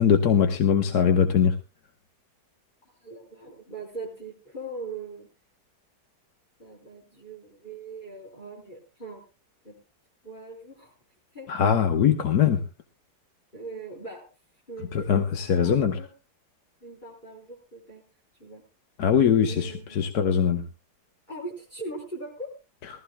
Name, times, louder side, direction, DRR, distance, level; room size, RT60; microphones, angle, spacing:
voice 1, 0.0-1.5 11.5-12.6 15.1-16.0 19.0-20.6, left 8 dB, 70° left, 5 dB, 1.6 m, -21 dB
voice 2, 2.8-5.3 6.6-9.2 9.6-9.8 10.2-10.9 11.3-11.5 13.5-14.3 14.7-16.1 16.8-18.0 18.4-18.6 19.5-20.0 21.3-22.5, right 2 dB, 30° left, -4 dB, 4.3 m, -40 dB
21.0 x 15.0 x 2.2 m, 0.30 s
omnidirectional pair, 1.7 m